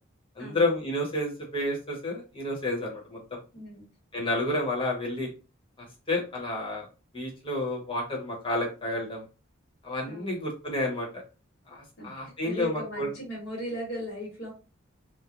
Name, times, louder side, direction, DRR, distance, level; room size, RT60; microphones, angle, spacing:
voice 1, 0.4-3.4 4.1-5.3 5.8-6.8 7.1-9.2 9.8-11.2 11.7-13.1, left 1 dB, 25° left, -1 dB, 0.9 m, -30 dB
voice 2, 3.5-3.8 10.1-10.4 12.0-12.1 12.4-14.5, right 1 dB, 70° left, -3 dB, 1.1 m, -37 dB
2.9 x 2.0 x 2.4 m, 0.33 s
head